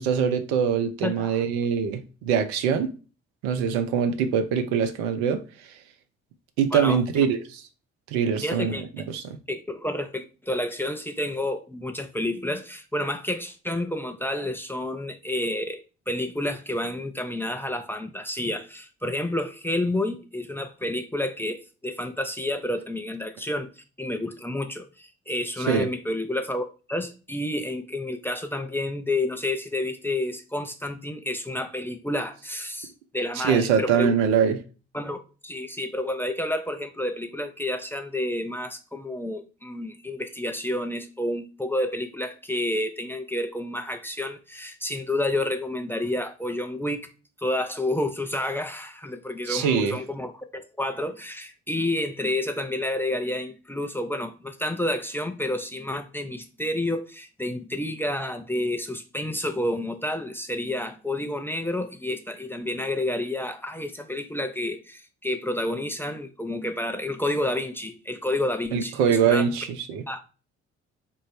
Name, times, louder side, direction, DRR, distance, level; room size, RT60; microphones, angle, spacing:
voice 1, 0.0-2.9 3.4-5.4 6.6-7.6 8.1-9.4 25.7-25.9 33.4-34.6 49.5-50.0 68.7-70.2, right 7 dB, 70° right, 0.6 m, -23 dB
voice 2, 1.0-1.4 6.7-7.3 8.4-8.8 9.5-34.2 34.9-47.1 47.4-69.5 70.1-70.2, left 1 dB, 5° left, 0.6 m, -30 dB
3.6 x 2.1 x 4.2 m
figure-of-eight pair, 40°, 35 cm